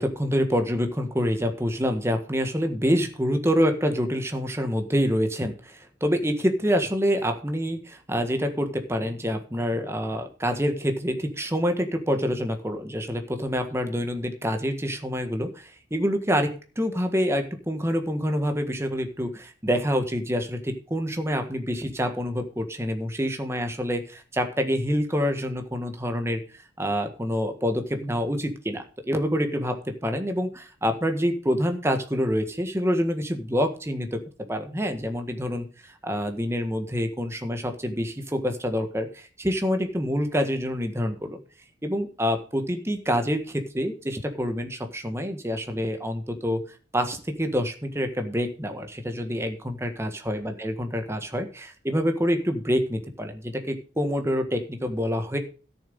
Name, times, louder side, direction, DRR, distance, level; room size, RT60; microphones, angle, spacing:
voice 1, 0.0-34.2 34.5-41.4 41.8-46.6 46.9-55.4, equal, 15° right, 6 dB, 1.5 m, -27 dB
13.0 x 7.1 x 5.3 m, 0.36 s
head